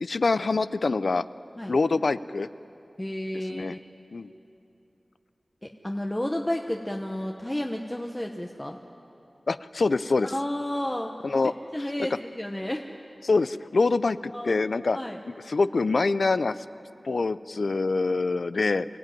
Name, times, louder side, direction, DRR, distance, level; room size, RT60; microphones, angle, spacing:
voice 1, 0.0-1.2 1.7-2.5 3.5-3.8 4.1-4.3 9.5-10.3 11.2-11.5 13.2-15.0 15.5-16.5 17.0-18.9, left 3 dB, 75° left, 15 dB, 0.5 m, -25 dB
voice 2, 3.0-3.8 5.6-8.8 10.2-11.1 11.7-12.9 14.3-14.6 14.9-15.2, left 1 dB, 20° left, 2 dB, 1.0 m, -31 dB
24.5 x 15.5 x 9.3 m, 2.8 s
wide cardioid pair, 70°, 0 cm